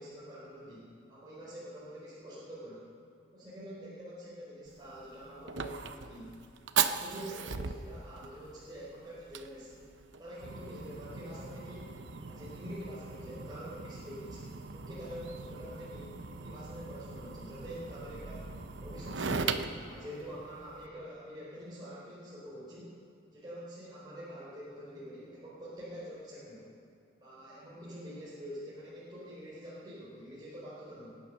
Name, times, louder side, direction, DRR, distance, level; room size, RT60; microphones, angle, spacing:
voice 1, 0.0-2.9 3.3-6.3 6.7-9.9 10.2-11.9 12.2-22.9 23.3-26.7 27.2-31.2, equal, 25° right, -9 dB, 4.1 m, -46 dB
Fire, 4.7-20.9, right 5 dB, 85° right, 0.8 m, -39 dB
22.5 x 10.0 x 6.4 m, 2.6 s
head